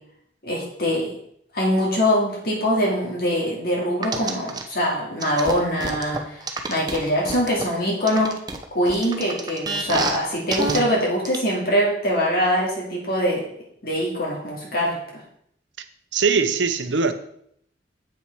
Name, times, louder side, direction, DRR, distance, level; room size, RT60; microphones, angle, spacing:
voice 1, 0.4-1.1 1.5-8.3 8.7-13.4 13.8-15.2, equal, 55° left, 2.5 m, -23 dB
sound 1, 4.0-4.6 5.2-7.6 8.1-10.2 10.5-10.8 11.2-11.4, right 3 dB, 25° right, 0.8 m, -28 dB
voice 2, 16.1-17.1, right 5 dB, 90° right, 0.8 m, -21 dB
8.1 x 6.2 x 4.6 m
head